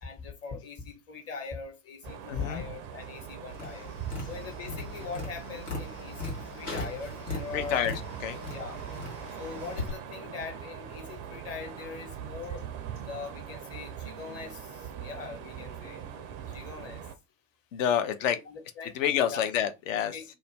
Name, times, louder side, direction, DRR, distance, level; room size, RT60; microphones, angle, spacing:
voice 1, 0.0-3.9 4.3-7.9 8.5-8.8 9.4-12.7 13.1-16.0 16.5-17.0 18.4-19.0 19.3-19.5 20.1-20.2, left 5 dB, 30° left, 1.1 m, -41 dB
sound 1, 2.0-17.2, right 8 dB, 30° right, 0.4 m, -42 dB
voice 2, 2.3-2.6 7.5-8.4 17.7-18.4 18.9-20.2, left 9 dB, 60° left, 0.6 m, -28 dB
Tap, 3.5-9.9, left 3 dB, 90° left, 1.2 m, -39 dB
2.4 x 2.1 x 3.1 m
figure-of-eight pair, 75°, 44 cm